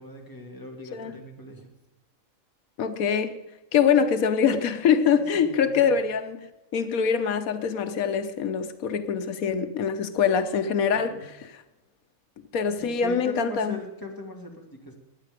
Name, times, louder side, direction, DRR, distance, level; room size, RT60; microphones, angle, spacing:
voice 1, 0.0-1.7 5.1-6.0 10.9-11.3 12.8-15.0, left 1 dB, 15° left, 2.4 m, -41 dB
voice 2, 2.8-3.4 3.7-11.2 11.5-11.6 12.5-13.8, left 7 dB, 90° left, 1.3 m, -24 dB
21.0 x 9.2 x 5.1 m
omnidirectional pair, 1.4 m